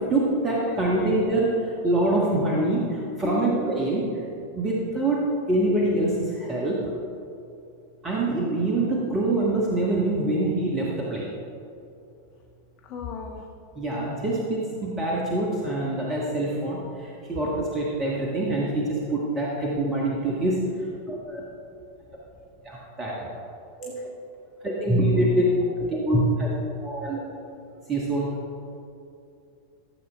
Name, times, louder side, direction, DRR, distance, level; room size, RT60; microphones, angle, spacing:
voice 1, 0.0-4.1 4.5-6.8 8.0-11.3 13.8-20.6 21.1-21.4 22.6-23.3 23.8-23.9 24.6-25.5 25.8-26.5 26.8-27.2 27.9-28.3, right 1 dB, 20° right, -4 dB, 1.4 m, -25 dB
voice 2, 0.6-1.1 3.2-3.5 12.9-13.4, left 7 dB, 40° left, 1 dB, 0.8 m, -34 dB
13.5 x 7.4 x 3.4 m, 2.6 s
figure-of-eight pair, 90°, 0 cm